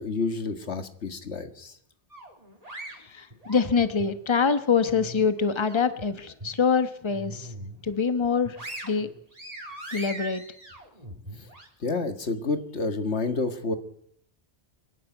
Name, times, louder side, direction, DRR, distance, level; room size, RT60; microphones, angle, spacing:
voice 1, 0.0-1.7 11.8-13.8, left 3 dB, 85° left, 9 dB, 1.9 m, -29 dB
sound 1, 2.1-4.1 4.6-6.0 6.4-6.6 7.0-7.8 8.2-11.7, right 1 dB, 35° right, 3.6 m, -41 dB
voice 2, 3.0-7.5 7.8-8.6 8.8-9.1 9.9-10.4, left 5 dB, 25° left, 11 dB, 1.2 m, -25 dB
25.5 x 11.0 x 9.2 m, 0.66 s
omnidirectional pair, 1.1 m